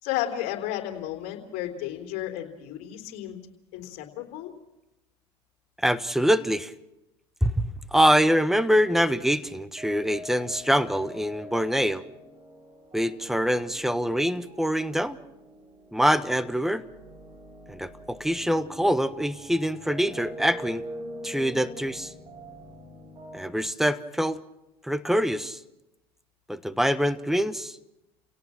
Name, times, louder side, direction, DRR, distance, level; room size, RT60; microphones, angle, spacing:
voice 1, 0.0-3.4 3.7-4.5, left 12 dB, 65° left, 5 dB, 3.8 m, -33 dB
voice 2, 5.8-6.7 7.4-12.0 12.9-15.2 15.9-16.8 17.7-20.8 21.2-22.1 23.3-24.4 24.8-25.6 26.5-27.8, equal, 5° right, 13 dB, 1.3 m, -24 dB
sound 1, 9.8-23.5, equal, 35° right, 7.5 m, -44 dB
30.0 x 18.0 x 6.1 m, 0.92 s
hypercardioid pair, 85°, 12 cm